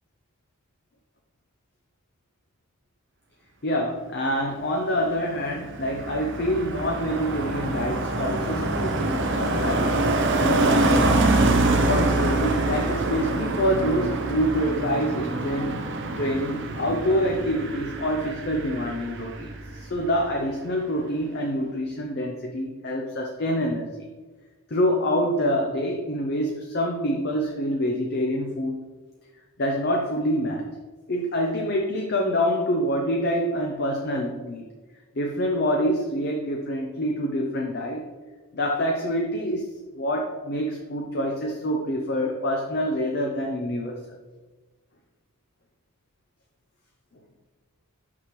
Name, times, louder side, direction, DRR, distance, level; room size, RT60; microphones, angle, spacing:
voice 1, 3.6-11.4 11.8-15.8 16.1-19.5 19.8-24.0 24.7-28.8 29.6-30.7 31.1-34.7 35.2-38.0 38.5-39.7 40.0-44.0, equal, 45° left, 1 dB, 0.6 m, -26 dB
Car passing by, 5.0-19.8 20.1-20.4, right 2 dB, 55° right, 0.6 m, -25 dB
6.0 x 5.9 x 3.1 m, 1.3 s
head